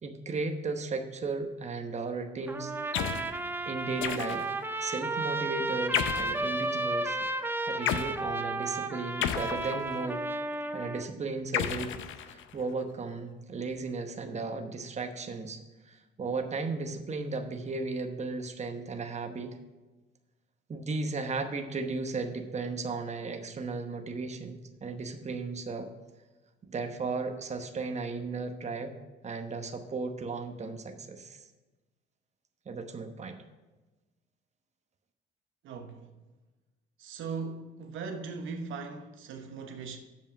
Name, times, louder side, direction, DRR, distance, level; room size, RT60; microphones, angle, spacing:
voice 1, 0.0-2.7 3.7-4.5 4.8-7.2 7.7-10.2 10.7-11.9 12.2-15.6 15.8-19.6 20.7-25.9 26.7-28.9 29.2-31.5 32.7-33.4, right 3 dB, 35° right, 1.0 m, -35 dB
Trumpet, 2.5-11.1, right 2 dB, 10° right, 0.5 m, -33 dB
sound 1, 2.9-3.3 4.0-4.6 5.9-6.4 7.9-8.1 9.2-10.1 11.5-12.6, left 10 dB, 85° left, 0.6 m, -32 dB
voice 2, 35.6-36.1 37.0-40.0, right 5 dB, 80° right, 0.9 m, -39 dB
7.3 x 5.2 x 7.0 m
cardioid pair, 90°, 20 cm